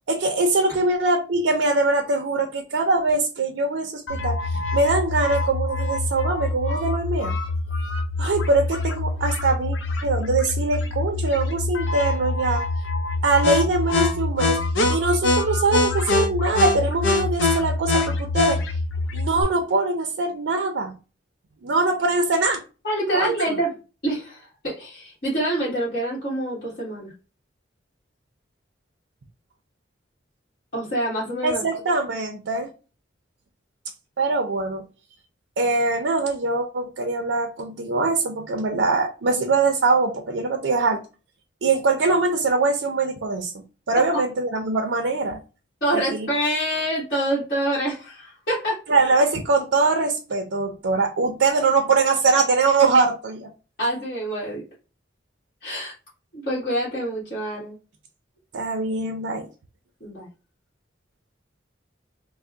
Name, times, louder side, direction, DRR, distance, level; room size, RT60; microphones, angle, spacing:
voice 1, 0.1-7.3 8.2-12.6 13.2-14.6 14.9-18.6 19.1-20.9 21.6-22.6 23.1-23.5 31.4-32.7 34.2-34.8 35.6-41.0 41.6-45.4 45.9-46.3 48.9-53.5 58.5-59.5, right 3 dB, 85° right, 0.5 m, -22 dB
sound 1, 4.1-19.4, left 2 dB, 85° left, 0.7 m, -24 dB
voice 2, 22.8-23.7 24.0-27.1 30.7-31.6 43.9-44.0 45.8-48.8 53.8-54.6 55.6-55.9 56.3-57.7 60.0-60.3, right 1 dB, 50° left, 1.4 m, -26 dB
3.4 x 2.1 x 3.7 m
head